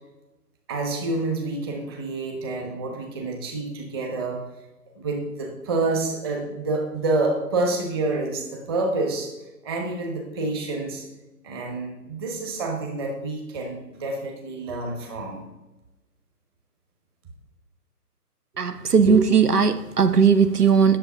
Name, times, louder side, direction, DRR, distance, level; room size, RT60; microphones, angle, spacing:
voice 1, 0.7-4.4 5.0-9.3 9.6-11.0 11.4-15.5, right 2 dB, 15° right, 2 dB, 1.2 m, -28 dB
voice 2, 18.6-21.0, right 6 dB, 75° right, 11 dB, 0.9 m, -18 dB
10.5 x 6.9 x 5.6 m, 1.0 s
figure-of-eight pair, 145°, 48 cm